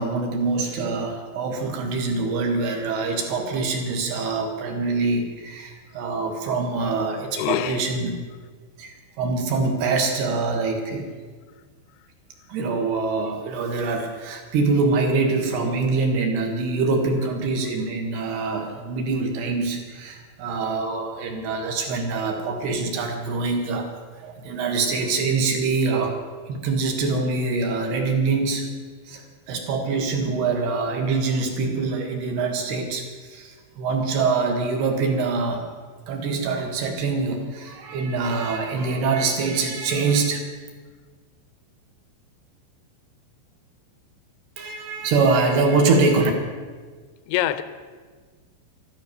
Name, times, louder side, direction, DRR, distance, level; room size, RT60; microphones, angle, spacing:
voice 1, 0.0-8.2 8.8-11.1 12.5-23.9 24.2-26.2 26.5-28.7 29.1-33.0 33.3-35.6 36.1-40.5 44.6-46.3, right 3 dB, 65° right, 2 dB, 3.5 m, -24 dB
voice 2, 7.3-7.9 47.3-47.6, left 12 dB, 80° left, 12 dB, 2.6 m, -24 dB
13.0 x 13.0 x 6.6 m, 1.5 s
omnidirectional pair, 5.4 m